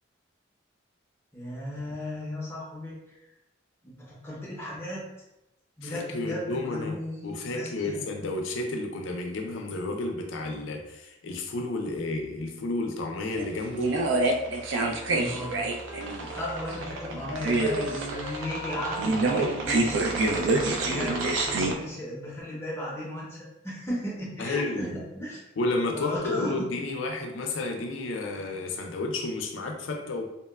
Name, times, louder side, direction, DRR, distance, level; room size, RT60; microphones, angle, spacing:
voice 1, 1.3-3.2 3.8-5.0 5.8-8.0 15.0-20.1 20.8-21.2 21.4-25.4 25.9-26.7, left 1 dB, 15° left, -6 dB, 0.6 m, -35 dB
voice 2, 5.8-7.0 7.2-13.9 14.3-14.4 24.4-25.0 25.6-30.3, left 2 dB, 80° left, 3 dB, 0.4 m, -31 dB
sound 1, 13.3-21.7, right 2 dB, 75° right, 0.3 m, -27 dB
Wind instrument woodwind instrument, 14.8-17.4 17.7-20.4, equal, 60° right, 1.3 m, -42 dB
2.8 x 2.1 x 2.2 m, 0.93 s
head